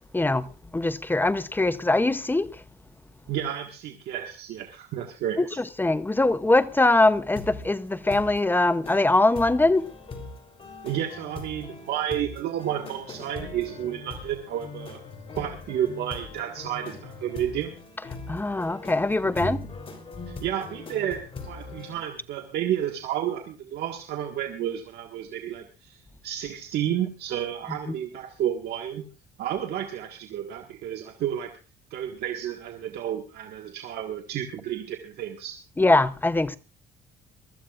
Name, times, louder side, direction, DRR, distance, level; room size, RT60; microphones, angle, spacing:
voice 1, 0.1-0.5 0.7-2.5 5.4-5.5 5.8-9.9 18.3-19.7 35.8-36.6, left 2 dB, 10° left, 0.7 m, -22 dB
voice 2, 3.3-5.6 10.8-15.0 15.3-17.7 19.2-19.6 20.3-29.1 29.4-31.5 31.9-35.6, right 10 dB, 70° right, 1.7 m, -31 dB
sound 1, 7.4-7.7 8.1-8.4 8.8-9.0 9.3-22.0, left 3 dB, 35° left, 3.5 m, -40 dB
23.0 x 14.0 x 2.5 m
cardioid pair, 110°, 17 cm